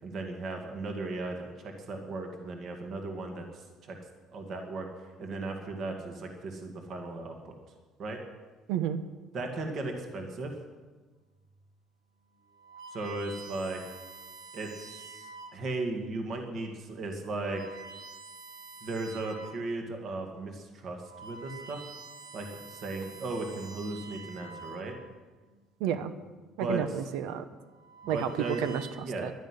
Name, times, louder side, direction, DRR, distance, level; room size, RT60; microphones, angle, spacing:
voice 1, 0.0-4.0 4.3-4.9 5.2-7.5 8.0-8.2 9.3-10.5 12.9-13.8 14.5-17.8 18.8-21.8 22.3-25.0 26.6-27.0 28.0-28.6 29.0-29.3, right 2 dB, 40° right, 4 dB, 1.8 m, -36 dB
voice 2, 8.7-9.0 25.8-26.1 26.6-27.4 28.1-28.3 28.6-28.9 29.2-29.3, right 9 dB, 85° right, 11 dB, 0.9 m, -30 dB
sound 1, 11.5-11.8 12.4-15.8 16.5-16.7 17.3-19.7 20.2-20.3 20.8-25.3 26.3-26.7 27.6-28.9, right 3 dB, 65° right, 1.9 m, -48 dB
11.5 x 10.5 x 9.8 m, 1.3 s
cardioid pair, 175°, 0 cm